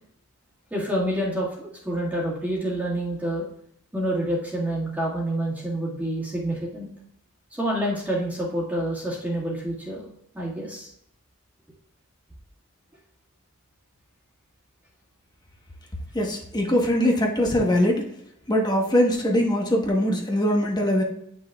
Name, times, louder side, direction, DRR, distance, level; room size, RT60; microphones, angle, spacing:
voice 1, 0.7-3.5 3.9-6.9 7.5-10.0 10.3-10.9, right 1 dB, 5° right, -6 dB, 1.7 m, -28 dB
voice 2, 16.1-18.0 18.5-21.0, equal, 20° left, 0 dB, 1.0 m, -22 dB
9.4 x 6.1 x 2.3 m, 0.71 s
head